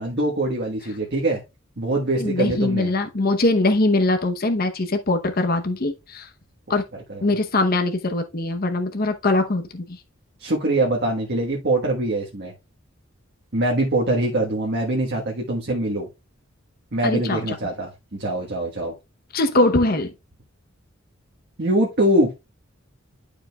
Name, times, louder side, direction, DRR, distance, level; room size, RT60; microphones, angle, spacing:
voice 1, 0.0-1.4 1.8-2.9 7.1-7.3 10.4-12.5 13.5-16.1 16.9-18.9 21.6-22.3, right 1 dB, 55° right, 1.4 m, -23 dB
voice 2, 2.2-6.3 6.7-6.8 7.2-10.0 17.0-17.6 19.3-20.1, left 2 dB, 45° left, 0.9 m, -22 dB
11.0 x 5.1 x 2.3 m
head